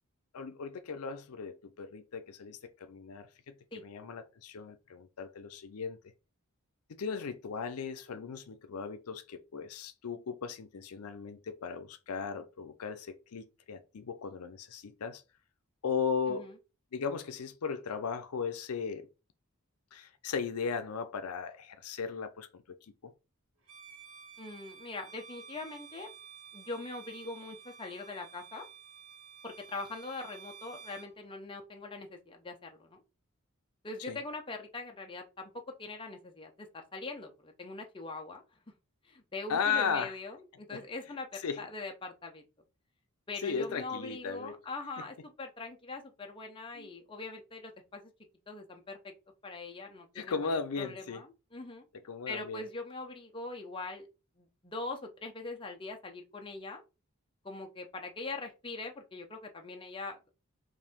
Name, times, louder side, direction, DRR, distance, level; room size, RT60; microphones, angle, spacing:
voice 1, 0.3-3.3 3.8-6.0 7.0-15.2 15.8-16.5 16.9-19.1 19.9-22.6 23.0-23.1 34.0-34.2 39.5-40.1 40.7-40.8 41.4-41.6 43.4-44.5 46.8-46.9 50.2-51.2 52.1-52.7, left 6 dB, 85° left, 0.5 m, -36 dB
Bowed string instrument, 23.6-31.1, right 7 dB, 85° right, 1.3 m, -52 dB
voice 2, 24.4-26.1 26.5-28.6 29.4-33.0 33.8-35.5 35.8-38.4 39.0-42.4 43.3-48.1 48.5-49.1 49.4-51.8 52.3-54.1 54.4-56.8 57.4-60.3, left 3 dB, 25° left, 0.7 m, -42 dB
4.7 x 2.6 x 3.5 m
head